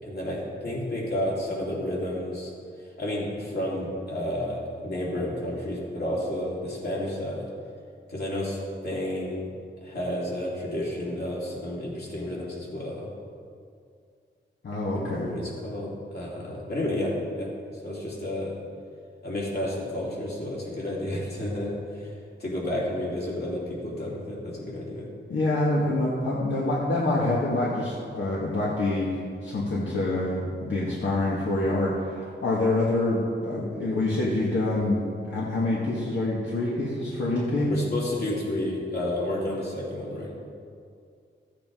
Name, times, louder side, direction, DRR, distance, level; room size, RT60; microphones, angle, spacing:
voice 1, 0.0-2.5 3.0-7.5 8.1-9.4 9.8-13.1 14.9-17.5 17.8-18.6 19.2-22.1 22.4-25.1 37.7-40.3, left 1 dB, 50° left, -5 dB, 2.9 m, -31 dB
voice 2, 14.6-15.4 25.3-37.7, left 2 dB, 70° left, -6 dB, 1.7 m, -26 dB
14.5 x 8.5 x 3.8 m, 2.3 s
wide cardioid pair, 110°, 21 cm